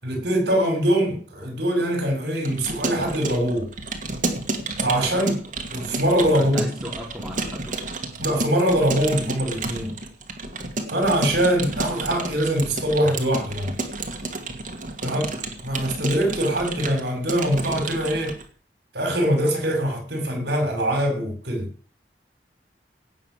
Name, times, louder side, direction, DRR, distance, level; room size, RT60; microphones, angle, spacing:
voice 1, 0.0-3.7 4.8-5.4 5.7-6.7 8.2-9.9 10.9-13.7 15.0-15.3 15.6-18.4 18.9-21.7, right 1 dB, 70° right, 5.7 m, -23 dB
Keyboard (musical) / Computer keyboard, 2.4-18.4, right 3 dB, 45° right, 2.4 m, -31 dB
voice 2, 6.4-7.8 15.0-15.2, equal, 5° right, 3.6 m, -36 dB
17.5 x 6.4 x 7.7 m
head